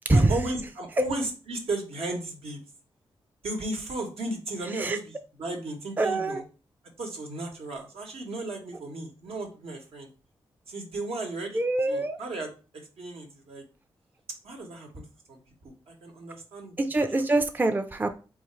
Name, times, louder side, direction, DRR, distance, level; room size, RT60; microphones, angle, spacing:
voice 1, 0.1-2.6 3.4-6.4 7.0-10.1 10.7-11.6 11.9-13.6 14.4-16.8, right 2 dB, 80° right, 1 dB, 1.0 m, -35 dB
voice 2, 6.0-6.4 11.5-12.2 16.8-18.2, right 2 dB, 20° right, 7 dB, 0.4 m, -24 dB
3.7 x 2.5 x 3.0 m, 0.34 s
cardioid pair, 60°, 10 cm